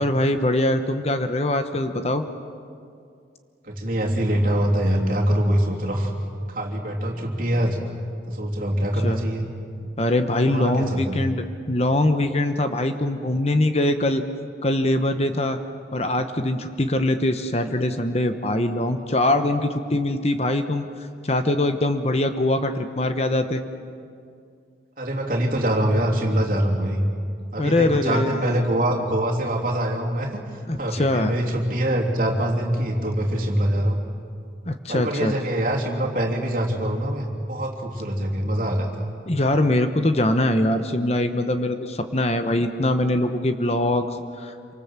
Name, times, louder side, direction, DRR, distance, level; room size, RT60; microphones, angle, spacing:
voice 1, 0.0-2.3 9.0-9.2 10.0-14.2 14.6-15.6 15.9-23.6 27.6-28.6 30.7-31.3 34.7-35.3 39.3-44.5, left 1 dB, 35° left, 8 dB, 1.0 m, -23 dB
voice 2, 3.6-6.1 6.5-7.8 8.2-9.5 10.5-11.2 25.0-27.0 27.5-30.4 30.8-34.0 34.9-39.1, right 1 dB, 45° right, -1 dB, 3.2 m, -24 dB
27.5 x 24.5 x 7.5 m, 2.4 s
head